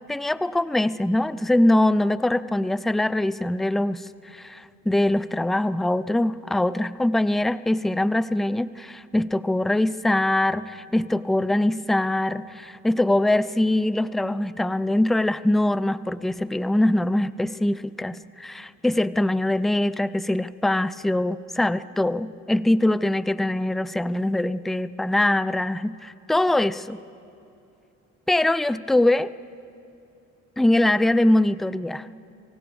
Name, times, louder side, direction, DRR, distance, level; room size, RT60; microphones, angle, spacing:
voice 1, 0.1-27.0 28.3-29.3 30.6-32.1, left 1 dB, ahead, 16 dB, 0.4 m, -23 dB
25.5 x 16.0 x 7.0 m, 2.7 s
cardioid pair, 90°, 30 cm